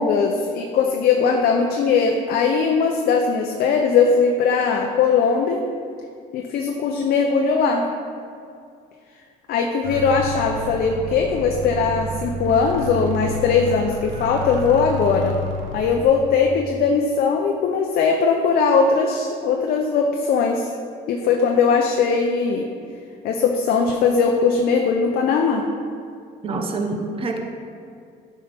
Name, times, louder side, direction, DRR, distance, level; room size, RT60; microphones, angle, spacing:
voice 1, 0.0-5.6 6.3-7.9 9.5-15.4 15.7-20.7 21.1-22.7 23.2-25.7, left 5 dB, 65° left, 2 dB, 0.6 m, -20 dB
sound 1, 9.8-16.1, equal, 85° right, 1.1 m, -30 dB
voice 2, 26.4-27.4, right 3 dB, 35° right, 3 dB, 0.9 m, -26 dB
9.2 x 5.4 x 3.5 m, 2.4 s
cardioid pair, 110°, 17 cm